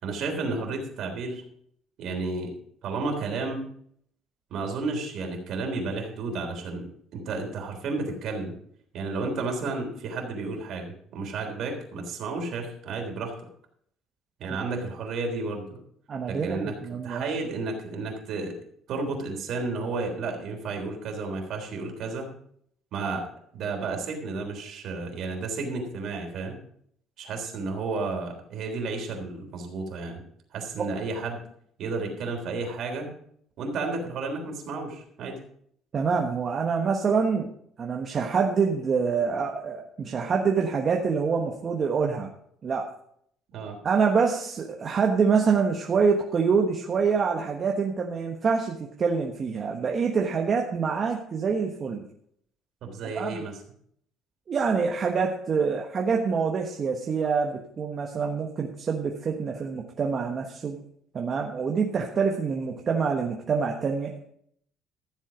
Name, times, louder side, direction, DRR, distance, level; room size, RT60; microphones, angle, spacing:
voice 1, 0.0-1.4 2.0-2.5 2.8-3.7 4.5-6.9 7.1-8.6 8.9-13.3 14.4-15.8 16.3-16.7 17.0-18.5 18.9-22.3 22.9-23.2 23.5-26.6 27.2-30.2 30.5-31.4 31.8-33.1 33.6-35.4 43.5-43.8 52.8-53.6, right 3 dB, 60° right, 2 dB, 3.5 m, -32 dB
voice 2, 16.1-17.2 30.8-30.9 35.9-37.5 37.8-42.3 42.6-42.9 43.8-52.1 53.0-53.4 54.5-60.8 61.1-64.3, right 5 dB, 35° right, 1 dB, 1.3 m, -26 dB
14.5 x 7.5 x 5.1 m, 0.67 s
cardioid pair, 130°, 0 cm